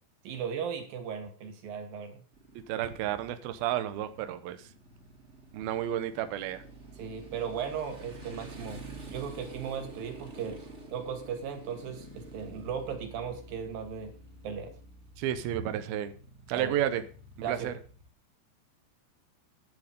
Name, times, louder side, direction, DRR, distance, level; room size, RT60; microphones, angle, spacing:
voice 1, 0.2-2.2 7.0-8.8 9.1-10.6 10.9-14.1 14.4-14.7 16.5-16.8 17.4-17.7, right 7 dB, 50° right, 6 dB, 3.9 m, -36 dB
Motorcycle, 2.3-18.1, right 2 dB, 25° right, 1.7 m, -48 dB
voice 2, 2.7-4.6 5.5-6.6 15.2-16.1 16.5-17.0 17.5-17.7, right 11 dB, 85° right, 10 dB, 2.1 m, -31 dB
13.5 x 10.5 x 5.2 m, 0.41 s
omnidirectional pair, 5.6 m